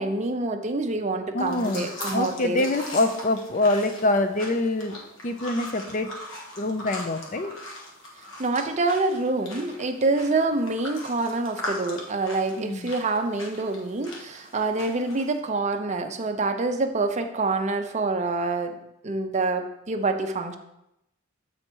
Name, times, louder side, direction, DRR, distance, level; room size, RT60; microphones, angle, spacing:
voice 1, 0.0-2.6 8.4-18.7 19.0-20.6, right 3 dB, 35° right, 6 dB, 0.5 m, -26 dB
voice 2, 1.3-5.0 5.2-6.2 6.6-7.5 12.6-12.9, left 2 dB, 40° left, 8 dB, 0.5 m, -25 dB
sound 1, 1.4-15.4, left 1 dB, 65° left, 1.4 m, -40 dB
7.8 x 4.2 x 4.6 m, 0.85 s
head